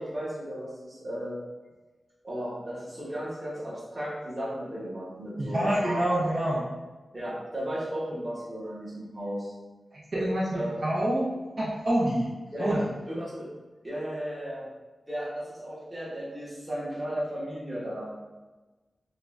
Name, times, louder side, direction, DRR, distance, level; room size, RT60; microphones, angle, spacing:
voice 1, 0.0-1.4 2.2-6.4 7.1-9.5 10.5-10.8 12.5-13.5 13.8-14.7 15.1-18.1, equal, 20° right, -8 dB, 1.3 m, -35 dB
voice 2, 5.4-6.7 9.9-11.3 11.6-12.3 12.6-12.8, right 1 dB, 50° right, -8 dB, 0.7 m, -27 dB
5.2 x 2.3 x 2.6 m, 1.2 s
wide cardioid pair, 140°, 0 cm